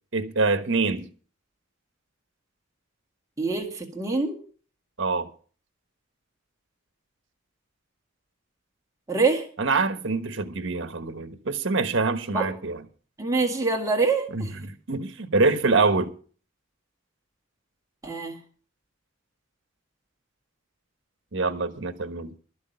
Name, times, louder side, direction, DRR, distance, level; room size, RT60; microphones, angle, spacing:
voice 1, 0.1-1.1 5.0-5.3 9.6-12.8 14.3-16.1 21.3-22.3, right 3 dB, 65° right, 1.3 m, -25 dB
voice 2, 3.4-4.4 9.1-9.5 12.3-12.5 13.2-14.5 18.0-18.4, right 3 dB, 15° right, 1.9 m, -25 dB
13.0 x 6.3 x 8.9 m
head